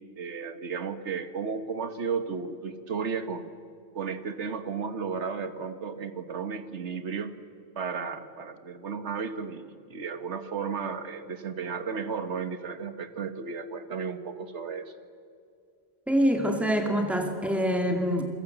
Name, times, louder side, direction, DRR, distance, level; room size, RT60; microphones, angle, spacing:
voice 1, 0.2-3.5 3.9-7.4 7.7-14.9, right 5 dB, 75° right, 10 dB, 1.6 m, -34 dB
voice 2, 16.1-18.2, equal, ahead, 3 dB, 2.4 m, -25 dB
28.5 x 22.5 x 8.1 m, 2.3 s
omnidirectional pair, 1.2 m